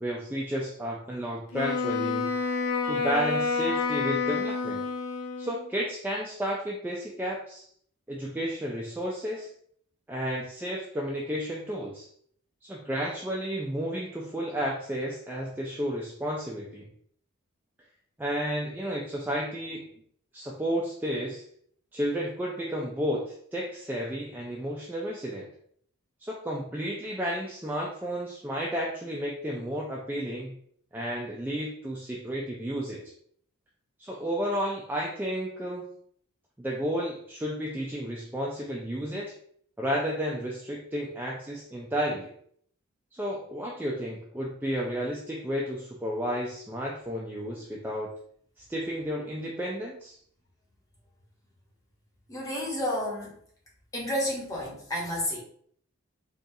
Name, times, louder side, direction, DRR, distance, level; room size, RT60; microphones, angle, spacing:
voice 1, 0.0-2.3 2.9-4.8 5.4-7.6 8.1-9.5 10.1-12.1 12.6-16.9 18.2-19.9 20.3-21.4 21.9-25.5 26.2-30.5 30.9-33.0 34.0-35.9 36.6-39.3 39.8-42.3 43.1-48.1 48.7-50.2, equal, 10° right, -4 dB, 0.3 m, -32 dB
Wind instrument woodwind instrument, 1.5-5.7, left 4 dB, 75° left, 0.4 m, -28 dB
voice 2, 52.3-53.3 53.9-55.4, equal, 15° left, -4 dB, 0.9 m, -31 dB
3.9 x 2.3 x 2.6 m, 0.63 s
head